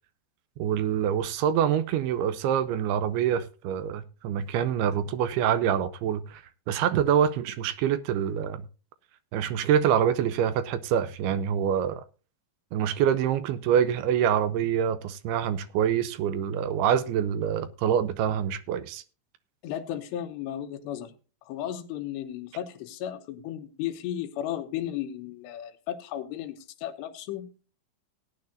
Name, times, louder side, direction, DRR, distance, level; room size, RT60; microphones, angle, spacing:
voice 1, 0.6-8.6 9.3-12.0 12.7-19.0, right 9 dB, 80° right, 2.4 m, -26 dB
voice 2, 19.6-21.1 21.5-27.5, left 11 dB, 80° left, 3.2 m, -34 dB
18.0 x 9.7 x 2.6 m
omnidirectional pair, 5.0 m